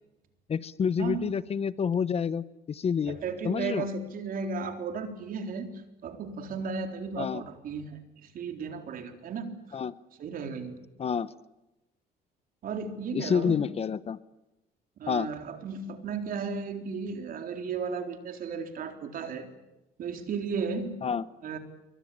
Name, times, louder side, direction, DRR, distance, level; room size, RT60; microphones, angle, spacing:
voice 1, 0.5-3.2 3.4-3.9 7.2-7.4 9.7-9.9 11.0-11.3 13.1-14.2 15.1-15.3 21.0-21.2, left 7 dB, 35° left, 16 dB, 0.9 m, -28 dB
voice 2, 3.1-9.5 10.2-10.8 12.6-13.7 15.0-19.5 20.0-21.0 21.4-21.6, right 5 dB, 55° right, 6 dB, 4.0 m, -35 dB
28.0 x 24.0 x 8.8 m, 0.97 s
cardioid pair, 110°, 17 cm